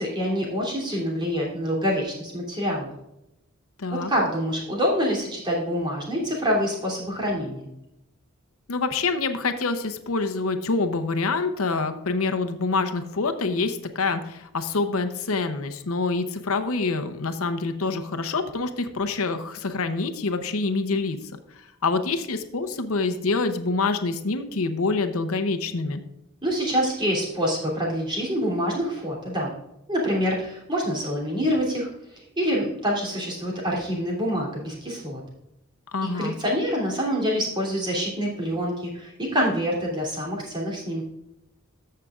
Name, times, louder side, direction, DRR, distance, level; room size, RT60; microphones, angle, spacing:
voice 1, 0.0-2.9 4.1-7.7 26.4-29.5 29.9-35.2 36.1-41.0, equal, 20° right, -3 dB, 3.0 m, -26 dB
voice 2, 3.8-4.1 8.7-21.2 21.5-26.0 35.9-36.3, left 3 dB, 75° left, 9 dB, 0.8 m, -26 dB
14.5 x 6.6 x 2.4 m, 0.88 s
head